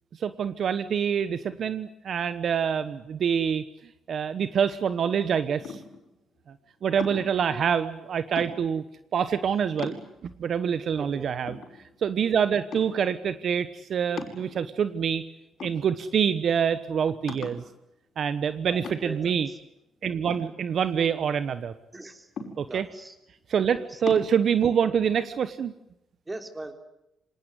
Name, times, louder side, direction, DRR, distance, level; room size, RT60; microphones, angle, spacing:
voice 1, 0.1-3.6 4.1-5.8 6.8-8.8 9.1-9.9 10.2-11.6 12.0-15.2 15.6-17.6 18.2-19.5 20.0-21.7 22.6-22.9 23.5-25.7, right 7 dB, 60° right, 12 dB, 1.1 m, -26 dB
sound 1, 5.6-6.1 7.0-7.4 8.3-8.9 9.4-9.5 9.8-10.4 11.0-11.1 11.5-12.2 12.7-13.1 14.2-14.9 15.6-16.2 16.6-16.7 17.3-17.7 18.8-19.3 20.3-21.2 22.4-22.9 24.1-24.3, left 4 dB, 60° left, 5.7 m, -39 dB
voice 2, 11.0-11.3 18.7-19.3 21.9-22.2 22.7-23.1 23.7-23.8 26.3-26.7, right 2 dB, 20° right, 6 dB, 3.5 m, -39 dB
26.0 x 18.5 x 9.8 m, 0.87 s
cardioid pair, 90°, 0 cm